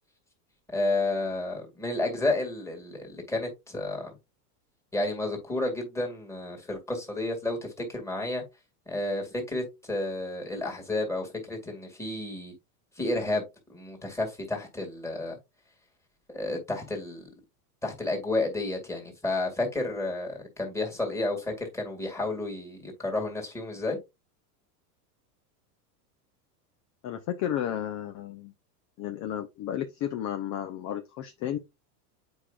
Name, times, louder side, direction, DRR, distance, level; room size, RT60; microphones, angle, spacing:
voice 1, 0.7-4.2 4.9-8.4 8.9-12.5 13.0-15.4 16.3-17.3 17.8-24.0, left 2 dB, 5° left, 2.1 m, -31 dB
voice 2, 27.0-28.5 29.0-31.6, left 10 dB, 35° left, 0.7 m, -33 dB
8.2 x 4.8 x 2.4 m
supercardioid pair, 135°, 48 cm